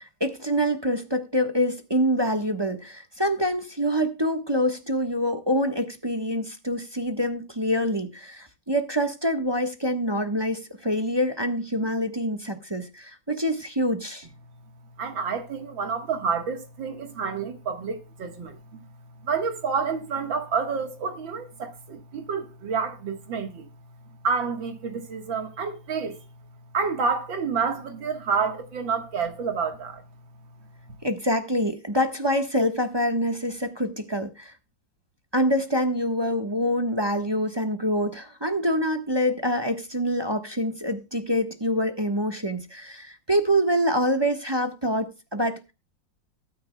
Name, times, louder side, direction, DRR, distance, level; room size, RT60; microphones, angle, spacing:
voice 1, 0.0-14.2 31.0-34.5 35.3-45.7, equal, 15° right, 1.0 m, -26 dB
voice 2, 15.0-18.8 19.2-23.7 24.2-26.2 26.7-30.0, right 5 dB, 85° right, 2.3 m, -29 dB
20.5 x 9.6 x 2.2 m
omnidirectional pair, 2.0 m